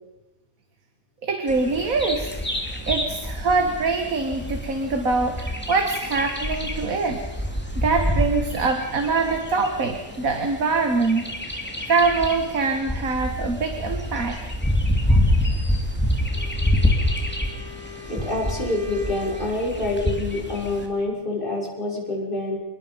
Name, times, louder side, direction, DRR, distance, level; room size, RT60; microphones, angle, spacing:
voice 1, 1.2-2.4 2.9-7.2 7.8-14.4 15.1-15.2, right 4 dB, 75° right, 4 dB, 2.3 m, -24 dB
Bird vocalization bird call bird song, 1.5-20.9, left 1 dB, 5° left, 3.0 m, -27 dB
Wind instrument woodwind instrument, 16.3-19.8, left 5 dB, 35° right, 2.9 m, -42 dB
voice 2, 18.1-22.6, left 2 dB, 40° left, -3 dB, 6.5 m, -26 dB
27.5 x 21.0 x 5.3 m, 1.0 s
omnidirectional pair, 1.4 m